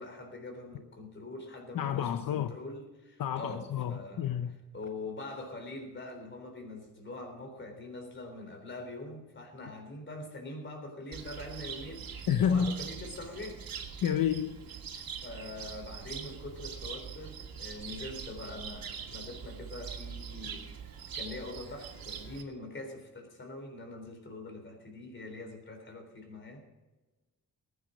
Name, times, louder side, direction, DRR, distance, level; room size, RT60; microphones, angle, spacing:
voice 1, 0.0-4.3 4.7-13.8 14.9-20.7 21.1-26.7, left 2 dB, 35° left, 3.6 m, -44 dB
voice 2, 1.7-2.5 3.2-4.6 12.3-12.7 14.0-14.6, left 8 dB, 70° left, 0.8 m, -29 dB
Cricket, 11.1-22.4, right 7 dB, 75° right, 2.4 m, -43 dB
20.0 x 9.5 x 5.1 m
wide cardioid pair, 180°, 35 cm